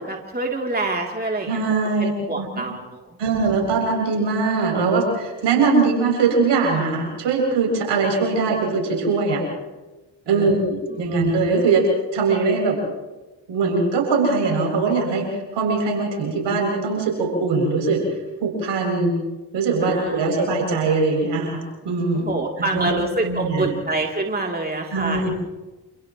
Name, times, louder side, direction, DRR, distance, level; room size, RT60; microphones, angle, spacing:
voice 1, 0.0-1.6 2.0-3.2 10.3-11.1 19.8-20.5 22.2-25.3, right 2 dB, 20° right, 0 dB, 3.4 m, -27 dB
voice 2, 1.5-2.5 3.2-9.4 10.3-11.9 12.1-12.8 13.5-18.0 18.4-19.1 19.5-22.3 22.6-22.9 23.2-23.6 24.9-25.3, right 4 dB, 70° right, 0 dB, 7.9 m, -21 dB
29.0 x 28.5 x 3.2 m, 1.1 s
hypercardioid pair, 45°, 44 cm